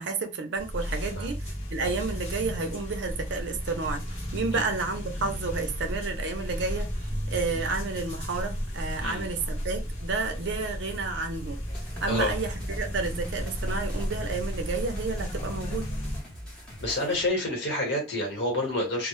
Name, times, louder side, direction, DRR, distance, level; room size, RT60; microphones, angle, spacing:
voice 1, 0.0-4.0 4.3-11.6 12.0-15.9, right 4 dB, 65° right, 0.5 m, -31 dB
sound 1, 0.6-16.2, equal, 35° left, 0.9 m, -34 dB
sound 2, 11.7-17.3, equal, 5° left, 0.7 m, -42 dB
voice 2, 16.8-19.1, left 1 dB, 60° left, 1.1 m, -28 dB
2.0 x 2.0 x 3.0 m
head